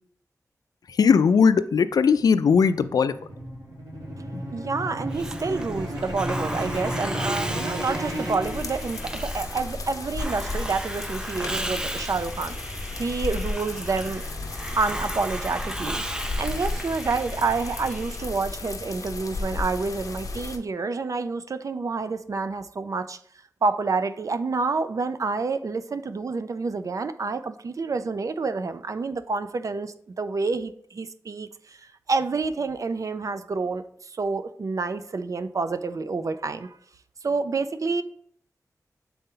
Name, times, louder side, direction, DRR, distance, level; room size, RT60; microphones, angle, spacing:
voice 1, 1.0-3.2 4.3-4.4, left 6 dB, 85° left, 13 dB, 0.4 m, -19 dB
sound 1, 2.1-9.2, equal, 85° right, 2.5 m, -33 dB
voice 2, 4.5-12.6 13.0-14.2 14.8-23.2 23.6-36.8 37.2-38.0, right 4 dB, 60° right, 11 dB, 0.5 m, -28 dB
Hiss, 5.1-18.6, right 1 dB, 10° right, 0.6 m, -35 dB
sound 2, 8.4-20.6, left 3 dB, 65° left, 0.8 m, -34 dB
6.8 x 4.2 x 3.8 m, 0.63 s
wide cardioid pair, 70°, 6 cm